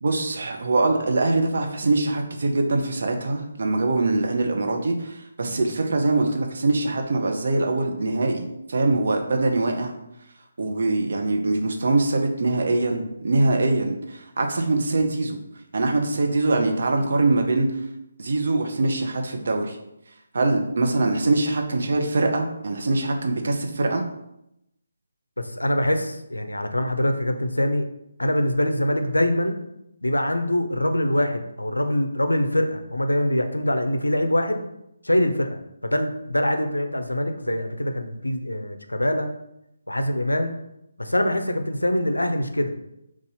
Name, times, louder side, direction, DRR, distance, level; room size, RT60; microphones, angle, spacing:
voice 1, 0.0-9.9 10.6-15.4 15.7-17.7 18.2-19.8 20.3-24.0, right 2 dB, 55° right, 3 dB, 0.6 m, -23 dB
voice 2, 25.4-27.9 28.2-29.6 30.0-34.6 35.0-35.6 35.8-39.3 39.9-40.5 41.0-42.7, left 1 dB, 80° left, 7 dB, 0.5 m, -24 dB
4.0 x 2.4 x 4.1 m, 0.82 s
figure-of-eight pair, 145°, 0 cm